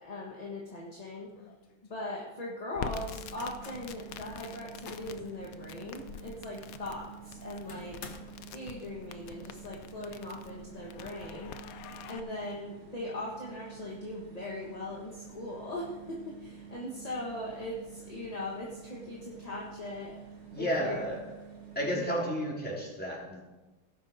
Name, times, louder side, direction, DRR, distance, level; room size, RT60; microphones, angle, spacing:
voice 1, 0.0-1.3 1.9-8.0 8.5-11.7 12.1-20.2 20.6-21.0 21.9-22.2, left 1 dB, 20° left, -4 dB, 1.4 m, -40 dB
sound 1, 1.3-2.1 3.0-3.9 4.4-5.2 5.6-5.7 6.2-6.3 7.7-8.5, left 5 dB, 45° left, 1.0 m, -50 dB
Crackle, 2.7-12.2, left 8 dB, 85° left, 0.7 m, -46 dB
sound 2, 2.7-22.0, right 8 dB, 35° right, 1.4 m, -49 dB
voice 2, 20.5-21.2 21.7-23.4, equal, 5° left, -5 dB, 3.4 m, -32 dB
17.0 x 6.4 x 5.1 m, 1.1 s
omnidirectional pair, 2.3 m